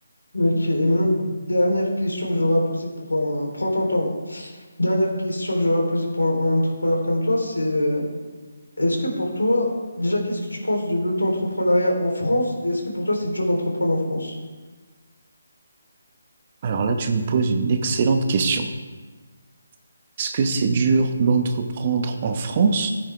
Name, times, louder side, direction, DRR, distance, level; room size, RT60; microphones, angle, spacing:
voice 1, 0.3-4.5 4.8-8.0 8.8-9.7 10.0-14.3, left 1 dB, 85° left, 0 dB, 3.5 m, -23 dB
voice 2, 16.6-18.7 20.2-22.9, right 4 dB, 35° right, 6 dB, 1.2 m, -21 dB
15.0 x 9.3 x 3.5 m, 1.3 s
figure-of-eight pair, 150°, 0 cm